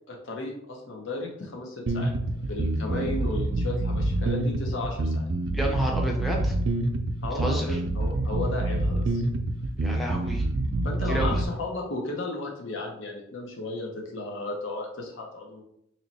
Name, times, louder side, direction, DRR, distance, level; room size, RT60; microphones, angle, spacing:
voice 1, 0.1-2.1 2.4-5.2 7.2-9.2 10.8-15.6, left 2 dB, 65° left, 0 dB, 0.8 m, -34 dB
sound 1, 1.9-11.5, right 1 dB, 60° right, 0.4 m, -27 dB
voice 2, 5.5-6.5 7.3-7.8 9.8-10.4 11.1-11.4, right 1 dB, ahead, 0 dB, 0.5 m, -30 dB
3.0 x 2.9 x 4.1 m, 0.73 s
head